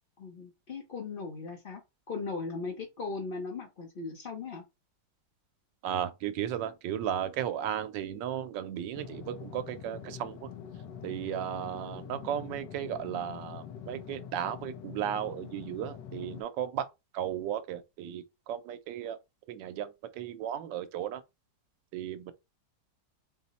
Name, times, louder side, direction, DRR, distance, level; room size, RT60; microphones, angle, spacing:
voice 1, 0.2-1.8 2.1-4.6, left 4 dB, 50° left, 0.6 m, -38 dB
voice 2, 5.8-10.5 11.0-16.9 17.1-19.2 19.5-21.2 21.9-22.3, right 10 dB, 85° right, 1.3 m, -35 dB
sound 1, 8.9-16.4, left 8 dB, 80° left, 1.4 m, -45 dB
4.3 x 2.1 x 4.0 m
omnidirectional pair, 1.9 m